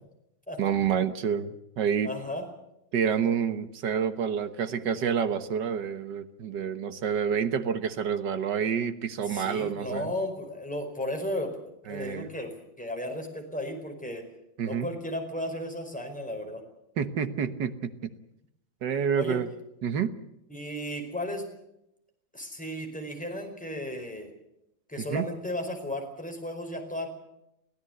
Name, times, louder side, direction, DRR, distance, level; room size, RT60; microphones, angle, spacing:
voice 1, 0.6-2.1 2.9-10.1 11.9-12.3 14.6-14.9 17.0-18.1 18.8-19.5 19.8-20.1 25.1-25.2, right 7 dB, 65° right, 10 dB, 1.8 m, -28 dB
voice 2, 2.0-2.5 9.3-11.5 11.8-12.5 12.8-14.2 14.6-16.6 19.2-19.4 20.5-21.5 22.3-24.3 24.9-27.1, left 1 dB, 5° left, 2 dB, 4.8 m, -34 dB
24.5 x 16.0 x 8.0 m, 0.83 s
omnidirectional pair, 2.1 m